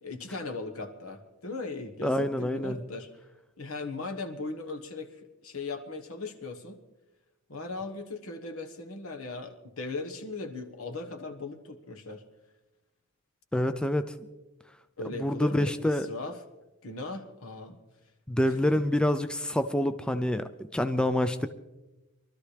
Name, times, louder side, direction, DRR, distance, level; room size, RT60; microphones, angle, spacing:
voice 1, 0.0-3.1 3.6-6.8 7.5-12.2 15.0-15.7 16.1-16.4 16.8-17.8 18.7-18.8, left 3 dB, 70° left, 5 dB, 1.4 m, -38 dB
voice 2, 2.0-2.8 13.5-14.1 15.1-16.1 18.3-21.5, left 1 dB, 5° left, 9 dB, 0.4 m, -27 dB
23.5 x 13.0 x 3.4 m, 1.1 s
head